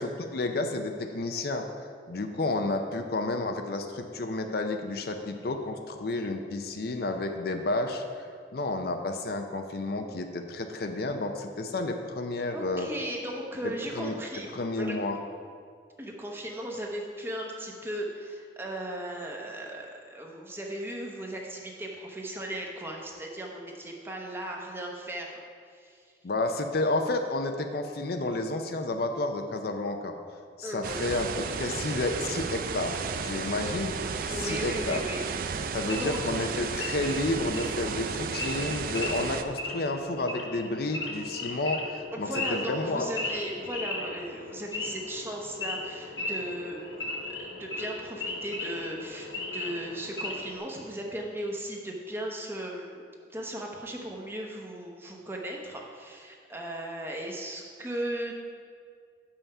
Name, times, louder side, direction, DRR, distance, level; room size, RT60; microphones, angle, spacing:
voice 1, 0.0-1.6 2.1-8.0 8.5-12.9 14.0-14.1 14.5-15.2 26.2-30.1 30.6-33.9 34.3-35.0 35.7-43.1, left 2 dB, 60° left, 5 dB, 0.5 m, -31 dB
voice 2, 12.5-15.0 16.0-26.1 30.6-31.0 34.2-35.3 35.7-36.3 42.1-53.0 53.3-58.4, right 1 dB, 15° right, 0 dB, 0.8 m, -37 dB
sound 1, 30.8-39.4, right 5 dB, 50° right, 0.4 m, -33 dB
Wild animals / Idling, 35.8-50.6, left 2 dB, 85° left, 1.3 m, -37 dB
7.1 x 5.7 x 5.4 m, 2.2 s
head